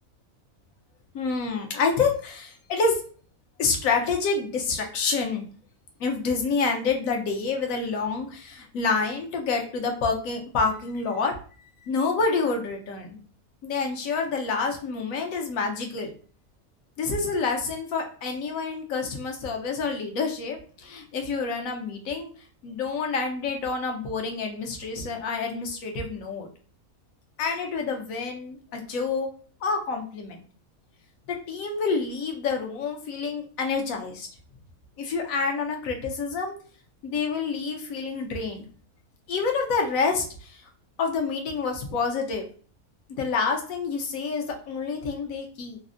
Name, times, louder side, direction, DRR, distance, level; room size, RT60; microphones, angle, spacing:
voice 1, 1.1-3.0 3.6-5.5 6.0-11.3 11.8-13.2 13.6-16.1 17.0-22.3 22.6-26.5 27.4-29.3 29.6-30.4 31.5-34.3 35.0-36.5 37.0-38.6 39.3-40.6 41.0-42.4 43.2-45.8, left 4 dB, 70° left, 2 dB, 1.1 m, -28 dB
3.4 x 2.0 x 2.5 m, 0.42 s
omnidirectional pair, 1.5 m